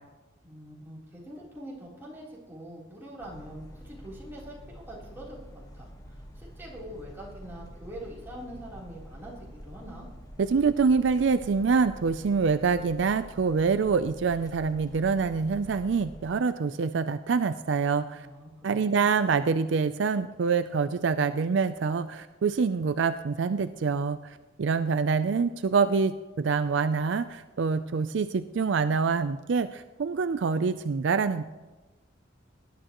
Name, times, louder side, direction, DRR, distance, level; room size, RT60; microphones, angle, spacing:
voice 1, 0.4-5.4 5.7-10.1 18.1-19.1, equal, 10° right, -6 dB, 3.5 m, -44 dB
sound 1, 3.2-16.3, equal, 20° left, 1.3 m, -47 dB
voice 2, 10.4-18.3 18.6-31.5, right 5 dB, 65° right, 11 dB, 0.4 m, -26 dB
19.0 x 11.5 x 3.0 m, 1.2 s
head